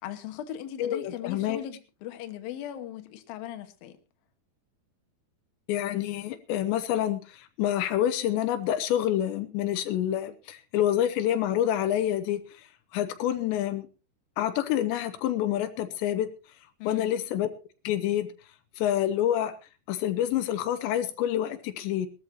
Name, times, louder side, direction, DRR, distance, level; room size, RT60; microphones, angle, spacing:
voice 1, 0.0-4.0 16.8-17.1, left 11 dB, 65° left, 2.9 m, -38 dB
voice 2, 0.8-1.6 5.7-12.4 12.9-13.9 14.4-16.3 16.9-17.5 17.8-18.3 18.8-19.5 19.9-22.1, left 11 dB, 85° left, 3.2 m, -27 dB
21.0 x 13.5 x 2.9 m
omnidirectional pair, 5.0 m